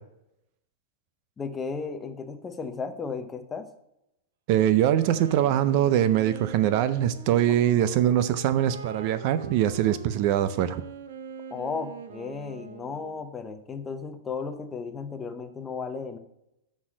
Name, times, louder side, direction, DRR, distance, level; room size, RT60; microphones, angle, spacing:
voice 1, 1.4-3.7 7.5-7.9 11.5-16.2, left 5 dB, 15° left, 8 dB, 0.7 m, -35 dB
voice 2, 4.5-10.8, right 11 dB, 40° right, 13 dB, 0.5 m, -23 dB
Wind instrument woodwind instrument, 4.9-13.2, right 5 dB, 85° right, 1.0 m, -42 dB
6.2 x 6.0 x 6.2 m, 0.83 s
supercardioid pair, 165°, 0 cm